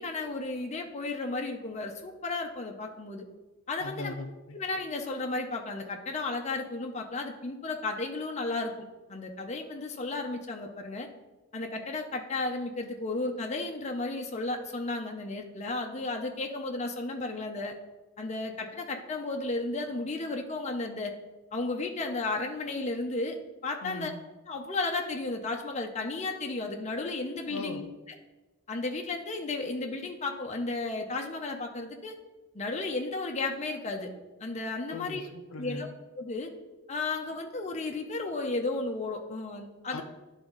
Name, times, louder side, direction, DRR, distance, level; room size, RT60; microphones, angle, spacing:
voice 1, 0.0-3.2 3.7-4.1 4.5-8.7 9.1-11.1 11.5-17.8 18.2-21.1 21.5-23.4 23.6-24.1 24.5-27.8 28.7-32.2 32.5-34.1 34.4-35.2 35.6-35.9 36.2-36.5 36.9-40.0, left 3 dB, 35° left, 3 dB, 0.7 m, -33 dB
voice 2, 3.8-4.6 23.8-24.2 27.5-27.9 34.9-35.9 39.9-40.0, left 2 dB, 75° left, 7 dB, 0.5 m, -39 dB
10.5 x 3.6 x 3.9 m, 1.1 s
head